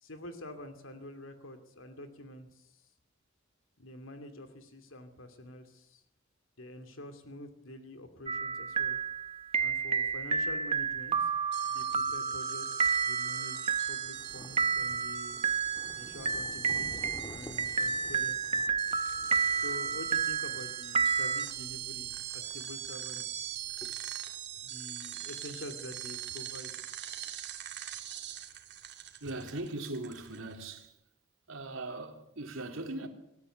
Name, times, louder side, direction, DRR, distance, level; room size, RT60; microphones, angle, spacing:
voice 1, 0.0-2.8 3.8-6.0 6.6-9.0 9.6-11.3 11.6-15.4 16.0-18.6 19.5-23.6 24.6-26.7, left 1 dB, 80° left, 2.6 m, -47 dB
sound 1, 8.3-21.5, right 5 dB, 30° right, 0.8 m, -31 dB
sound 2, 11.5-30.7, right 11 dB, 60° right, 2.6 m, -42 dB
Thunder, 14.1-24.1, left 1 dB, 20° left, 1.8 m, -52 dB
voice 2, 29.2-31.0 31.5-33.1, right 2 dB, 90° right, 3.4 m, -39 dB
25.5 x 13.5 x 9.9 m
head